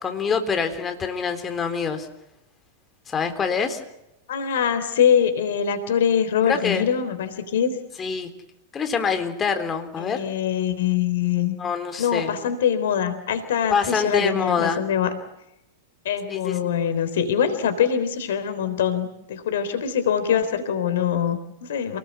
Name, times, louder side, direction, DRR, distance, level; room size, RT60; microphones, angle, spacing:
voice 1, 0.0-2.1 3.1-3.8 6.5-6.8 8.0-8.3 8.7-10.2 11.6-12.3 13.7-14.8 16.3-16.7, left 6 dB, 25° left, 7 dB, 3.7 m, -25 dB
voice 2, 4.3-7.8 10.0-11.5 12.0-15.2 16.1-22.0, left 8 dB, 70° left, 11 dB, 3.6 m, -23 dB
29.0 x 20.0 x 8.3 m, 0.88 s
hypercardioid pair, 95°, 0 cm